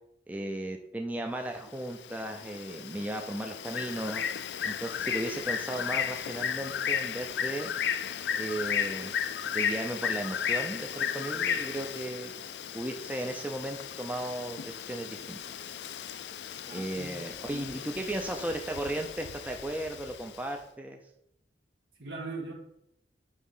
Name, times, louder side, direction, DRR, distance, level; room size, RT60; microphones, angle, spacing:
voice 1, 0.3-4.2 4.6-7.7 8.4-9.1 9.5-12.3 12.7-15.4 16.7-21.0, right 1 dB, 10° right, 3 dB, 0.5 m, -35 dB
Bird, 1.7-20.4, left 8 dB, 65° left, 0.4 m, -35 dB
voice 2, 16.6-17.2 17.5-17.7 22.0-22.5, right 3 dB, 75° right, -2 dB, 1.6 m, -40 dB
8.1 x 3.7 x 5.5 m, 0.79 s
head